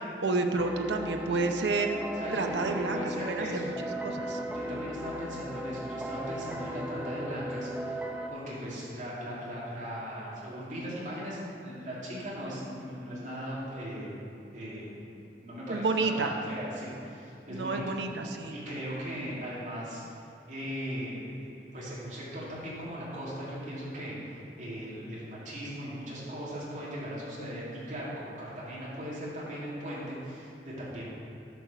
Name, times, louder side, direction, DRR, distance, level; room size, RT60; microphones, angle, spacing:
voice 1, 0.2-2.0 2.3-3.6 4.0-4.4 15.7-16.3 17.5-18.5, right 3 dB, 80° right, 4 dB, 0.7 m, -30 dB
sound 1, 0.6-8.3, equal, 10° right, 0.5 m, -37 dB
voice 2, 2.1-3.7 4.4-8.0 8.3-14.1 14.5-17.9 18.5-20.0 20.5-31.0, equal, 45° right, -7 dB, 2.5 m, -38 dB
10.5 x 4.7 x 6.7 m, 2.6 s
head